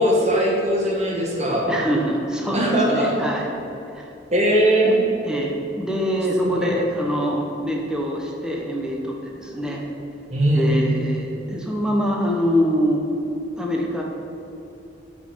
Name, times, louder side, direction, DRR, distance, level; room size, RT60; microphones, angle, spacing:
voice 1, 0.0-1.7 2.5-3.3 4.3-5.0 6.6-6.7 10.3-10.7, equal, 35° right, -2 dB, 1.6 m, -19 dB
voice 2, 1.7-3.5 3.9-4.1 4.8-5.0 5.3-9.8 10.5-13.0 13.6-14.0, equal, 5° right, -1 dB, 0.9 m, -24 dB
9.3 x 5.4 x 5.6 m, 3.0 s
head